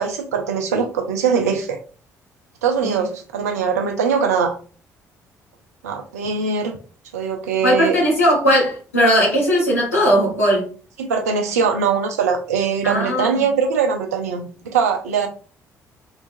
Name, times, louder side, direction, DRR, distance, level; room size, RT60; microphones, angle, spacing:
voice 1, 0.0-1.8 2.6-4.6 5.8-6.8 7.1-8.0 11.0-15.3, right 6 dB, 75° right, 4 dB, 0.5 m, -21 dB
voice 2, 7.6-10.7 12.8-13.4, equal, 85° left, -6 dB, 1.3 m, -18 dB
3.7 x 2.4 x 2.5 m, 0.38 s
figure-of-eight pair, 45°, 8 cm